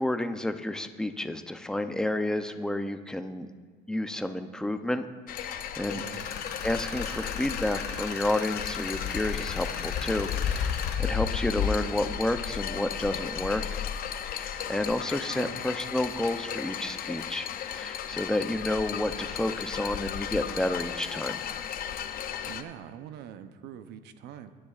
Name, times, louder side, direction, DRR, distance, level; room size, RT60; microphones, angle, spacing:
voice 1, 0.0-3.5 3.9-5.1 5.3-6.0 6.6-13.6 14.2-17.5 17.7-21.4, left 1 dB, 5° left, 8 dB, 0.6 m, -30 dB
sound 1, 5.3-22.6, left 8 dB, 60° left, 0.6 m, -34 dB
Tools, 5.9-10.9, left 6 dB, 75° left, 1.7 m, -39 dB
voice 2, 5.9-6.3 15.3-15.6 22.5-24.5, right 9 dB, 80° right, 10 dB, 0.7 m, -44 dB
17.0 x 9.8 x 2.5 m, 1.5 s
cardioid pair, 110°, 17 cm